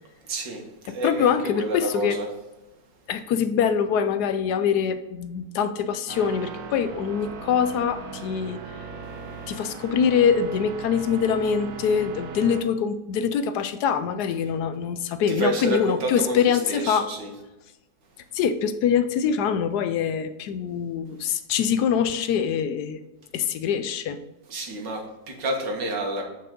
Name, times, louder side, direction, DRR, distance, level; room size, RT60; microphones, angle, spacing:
voice 1, 0.3-0.6 0.9-2.3 15.3-16.4 16.7-17.3 24.5-26.2, right 1 dB, 85° right, 2 dB, 2.1 m, -29 dB
voice 2, 0.9-2.2 3.1-8.6 9.5-17.1 18.3-23.0 23.3-24.2, left 7 dB, 75° left, 10 dB, 1.1 m, -24 dB
sound 1, 6.1-12.6, right 5 dB, 65° right, 1.2 m, -38 dB
7.7 x 5.5 x 3.7 m, 1.1 s
omnidirectional pair, 1.9 m